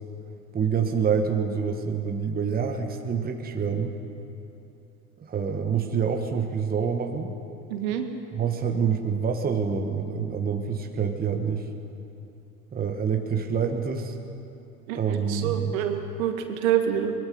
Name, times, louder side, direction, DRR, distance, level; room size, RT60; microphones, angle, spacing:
voice 1, 0.5-3.9 5.2-7.3 8.3-11.7 12.7-14.2 14.9-15.8, right 6 dB, 20° right, 4 dB, 1.6 m, -27 dB
voice 2, 7.7-8.0 14.9-17.1, right 9 dB, 55° right, 6 dB, 2.1 m, -27 dB
23.0 x 22.0 x 5.5 m, 2.9 s
figure-of-eight pair, 85°, 48 cm